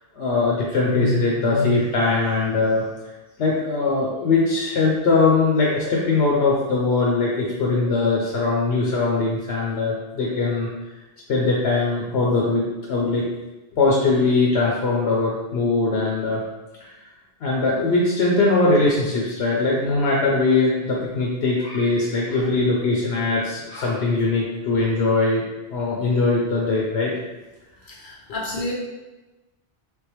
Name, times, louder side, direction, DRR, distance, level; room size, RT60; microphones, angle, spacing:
voice 1, 0.1-2.8 3.4-10.7 11.3-13.2 13.7-16.4 16.8-17.0 17.4-25.4 25.7-27.2, left 3 dB, 85° left, -3 dB, 0.9 m, -21 dB
voice 2, 27.9-28.7, left 1 dB, 55° left, -3 dB, 1.0 m, -30 dB
3.7 x 3.5 x 3.0 m, 1.1 s
omnidirectional pair, 1.1 m